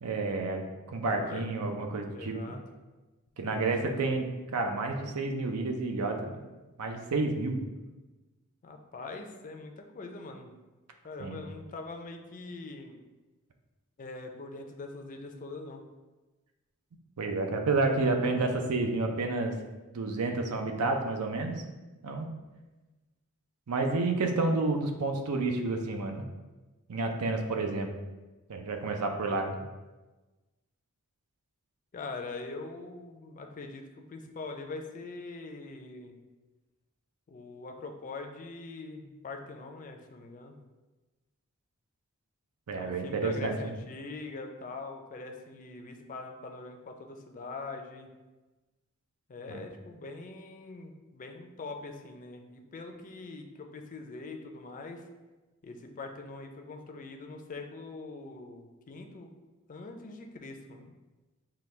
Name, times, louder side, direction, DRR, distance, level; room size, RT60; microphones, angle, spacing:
voice 1, 0.0-2.5 3.4-4.3 4.5-6.4 6.8-7.6 11.2-11.4 17.2-19.5 19.9-21.6 22.0-22.3 23.7-26.3 26.9-27.9 28.5-29.6 42.7-43.5 49.5-49.6, right 3 dB, 85° right, 4 dB, 0.6 m, -30 dB
voice 2, 0.9-1.8 2.1-2.6 3.4-4.0 8.6-10.5 11.0-12.9 14.0-15.8 31.9-36.2 37.3-40.6 42.8-48.1 49.3-55.0 55.6-59.3 59.7-60.9, left 3 dB, 35° left, 4 dB, 0.4 m, -43 dB
5.8 x 2.3 x 3.2 m, 1.2 s
head